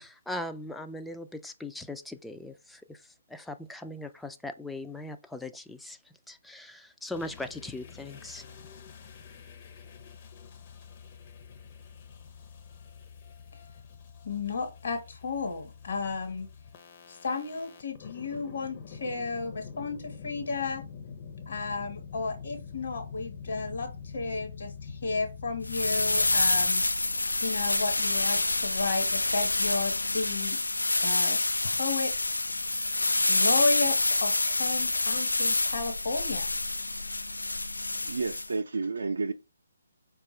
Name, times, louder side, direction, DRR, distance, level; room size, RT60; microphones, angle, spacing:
voice 1, 0.0-8.4, left 1 dB, 5° left, 0.3 m, -40 dB
sound 1, 7.1-26.7, left 6 dB, 35° left, 0.7 m, -46 dB
voice 2, 14.2-16.5 17.1-20.8 21.5-26.8 27.4-30.6 31.0-32.4 33.3-36.5, left 3 dB, 55° left, 1.2 m, -33 dB
sound 2, 25.6-38.5, left 2 dB, 90° left, 0.4 m, -27 dB
voice 3, 38.0-39.3, right 4 dB, 75° right, 0.5 m, -31 dB
4.6 x 2.4 x 4.3 m
figure-of-eight pair, 145°, 0 cm